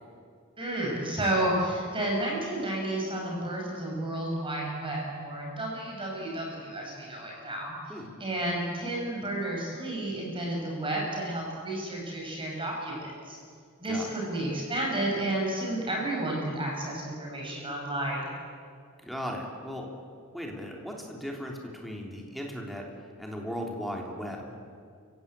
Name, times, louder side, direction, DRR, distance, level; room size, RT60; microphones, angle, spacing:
voice 1, 0.6-7.7 8.2-13.4 13.8-18.3, right 1 dB, 25° right, -1 dB, 6.7 m, -31 dB
voice 2, 19.0-19.9 20.3-22.8 23.2-24.6, equal, ahead, 0 dB, 3.2 m, -37 dB
29.0 x 16.0 x 8.8 m, 2.2 s
head